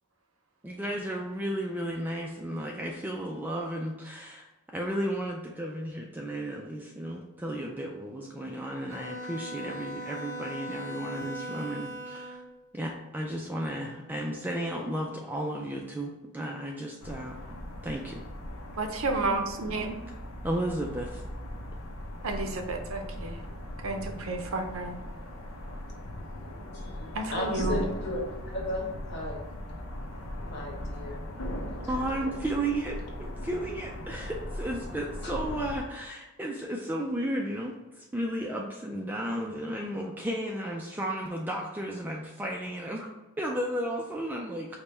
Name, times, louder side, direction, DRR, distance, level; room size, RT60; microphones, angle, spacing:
voice 1, 0.6-4.4 4.7-12.4 12.7-17.4 17.8-18.2 20.4-21.2 31.9-43.1 43.4-44.7, right 1 dB, 10° right, 0 dB, 0.3 m, -33 dB
Bowed string instrument, 8.9-12.5, right 1 dB, 15° left, 1.4 m, -39 dB
sound 1, 17.0-35.8, left 1 dB, 85° left, 0.7 m, -39 dB
voice 2, 18.8-19.9 22.2-23.4 23.8-25.0 27.1-27.9, right 3 dB, 70° right, 5 dB, 0.6 m, -31 dB
voice 3, 27.3-28.2 28.5-29.4 30.4-31.3 31.9-32.4, left 2 dB, 50° left, -2 dB, 1.2 m, -35 dB
5.1 x 2.2 x 4.3 m, 1.1 s
head